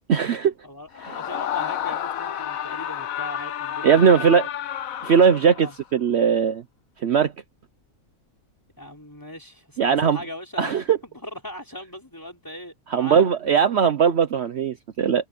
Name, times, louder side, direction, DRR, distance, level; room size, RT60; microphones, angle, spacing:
voice 1, 0.1-0.5 3.8-4.5 5.0-6.6 7.0-7.3 9.8-10.2 10.6-11.0 12.9-15.3, right 7 dB, 55° right, 1.0 m, -19 dB
voice 2, 0.6-4.4 5.6-5.8 8.8-10.8 11.1-13.6, left 1 dB, 15° left, 3.9 m, -38 dB
Screaming, 0.9-5.8, left 10 dB, 80° left, 1.3 m, -30 dB
omnidirectional pair, 1.4 m